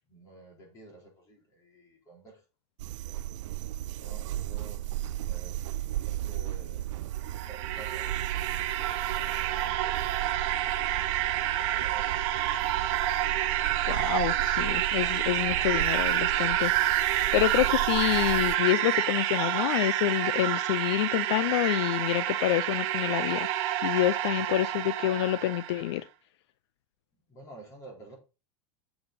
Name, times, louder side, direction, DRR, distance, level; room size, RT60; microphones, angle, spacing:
voice 1, 0.1-2.4 4.0-6.9 7.4-8.2 8.7-10.9 11.5-12.2 24.3-24.7 27.3-28.2, right 2 dB, 20° left, 3.6 m, -51 dB
sound 1, 2.8-18.6, right 14 dB, 80° right, 0.4 m, -36 dB
sound 2, 7.2-25.8, right 13 dB, 45° right, 1.0 m, -28 dB
voice 2, 13.9-23.5 23.8-26.0, left 15 dB, 65° left, 0.4 m, -28 dB
8.0 x 6.5 x 4.0 m
supercardioid pair, 165°, 15 cm